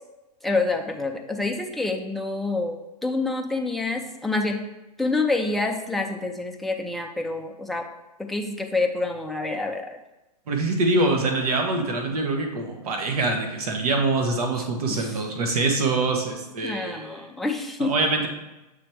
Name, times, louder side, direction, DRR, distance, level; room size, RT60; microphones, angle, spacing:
voice 1, 0.4-4.6 5.0-7.9 8.2-10.0 14.9-15.2 16.6-17.9, left 3 dB, ahead, 2 dB, 0.4 m, -27 dB
voice 2, 10.5-17.1 17.8-18.3, right 2 dB, 60° right, 4 dB, 1.3 m, -24 dB
7.0 x 3.4 x 4.5 m, 1.0 s
hypercardioid pair, 115°, 21 cm